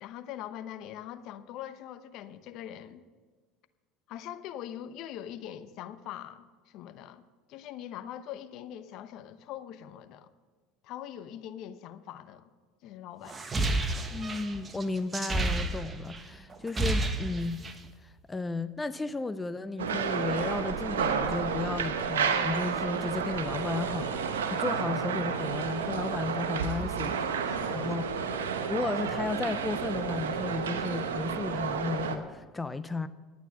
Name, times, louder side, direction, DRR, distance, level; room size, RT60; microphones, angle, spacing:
voice 1, 0.0-3.1 4.1-10.3 10.8-12.5 12.8-13.5 26.8-26.9 27.5-27.9, left 11 dB, 60° left, 12 dB, 0.8 m, -42 dB
sound 1, 13.3-16.2 16.5-17.9, right 2 dB, 25° right, 1.3 m, -30 dB
voice 2, 14.1-17.6 18.0-27.2 27.7-28.1 28.7-33.1, left 3 dB, 15° left, 13 dB, 0.5 m, -34 dB
sound 2, 19.8-32.2, right 6 dB, 85° right, 0.9 m, -31 dB
11.5 x 9.2 x 6.3 m, 1.4 s
hypercardioid pair, 75°, 0 cm